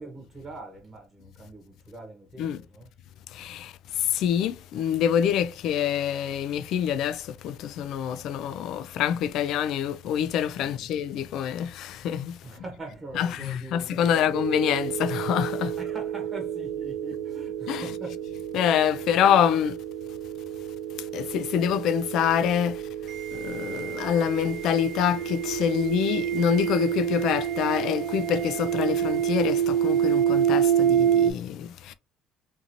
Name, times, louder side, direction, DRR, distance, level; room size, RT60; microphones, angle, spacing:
voice 1, 0.0-2.9 10.6-10.9 12.4-14.6 15.8-18.2, right 2 dB, 25° right, 0.9 m, -42 dB
voice 2, 3.3-3.7 4.0-12.4 13.1-15.7 17.7-17.9 18.5-19.8 21.1-22.8 23.3-31.9, left 9 dB, 65° left, 0.3 m, -26 dB
sound 1, 14.3-31.3, right 9 dB, 60° right, 0.3 m, -28 dB
2.6 x 2.5 x 2.9 m
cardioid pair, 120°, 0 cm